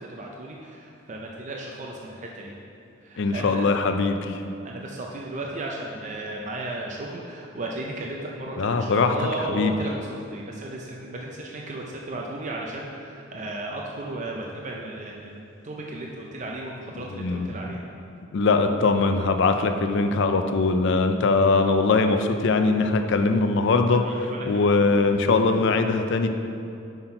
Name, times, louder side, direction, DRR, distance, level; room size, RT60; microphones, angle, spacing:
voice 1, 0.0-2.5 3.0-3.7 4.6-17.8 23.9-25.1, right 1 dB, 40° right, -1 dB, 0.5 m, -35 dB
voice 2, 3.2-4.4 8.6-9.1 9.5-9.7 17.1-17.6 18.3-26.3, left 3 dB, 60° left, 7 dB, 0.4 m, -21 dB
5.8 x 5.8 x 4.4 m, 2.6 s
head